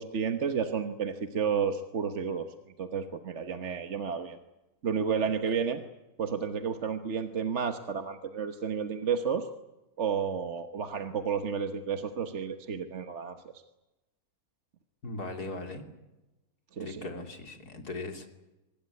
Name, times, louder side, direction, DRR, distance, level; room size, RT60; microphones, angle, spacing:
voice 1, 0.0-4.4 4.8-5.8 6.2-9.5 10.0-13.4 16.7-17.0, right 6 dB, 50° right, 7 dB, 1.5 m, -31 dB
voice 2, 15.0-15.8 16.8-18.3, left 2 dB, 80° left, 5 dB, 3.4 m, -38 dB
25.0 x 20.0 x 9.6 m, 1.0 s
omnidirectional pair, 1.6 m